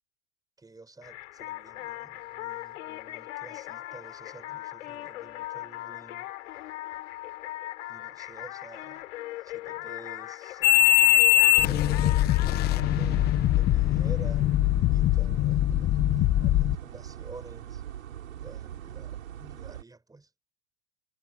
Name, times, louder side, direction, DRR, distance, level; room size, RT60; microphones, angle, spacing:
voice 1, 0.6-6.3 7.9-9.1 9.4-13.3 13.6-14.5 14.9-17.8 18.4-20.3, right 3 dB, 10° right, 5.8 m, -50 dB
sound 1, 1.0-14.5, left 16 dB, 70° left, 4.2 m, -39 dB
sound 2, 10.6-16.8, left 16 dB, 25° left, 0.5 m, -22 dB
sound 3, 11.6-19.8, right 10 dB, 90° right, 5.6 m, -40 dB
hypercardioid pair, 115°, 39 cm